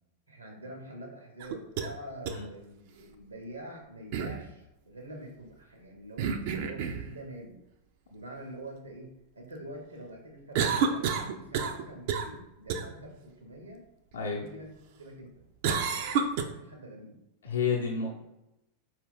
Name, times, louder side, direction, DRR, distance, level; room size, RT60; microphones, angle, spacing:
voice 1, 0.3-7.5 8.1-13.8 14.3-14.7 14.9-15.3 16.1-17.2, right 1 dB, 80° right, 1 dB, 0.9 m, -45 dB
sound 1, 1.4-1.9 2.3-2.4 4.1-4.4 6.2-7.1 10.5-11.8 12.1-12.3 12.7-12.8 15.6-16.4, right 6 dB, 50° right, 0.4 m, -29 dB
voice 2, 17.4-18.1, left 6 dB, 70° left, -3 dB, 0.7 m, -30 dB
4.5 x 2.8 x 3.6 m, 0.92 s
figure-of-eight pair, 90°, 0 cm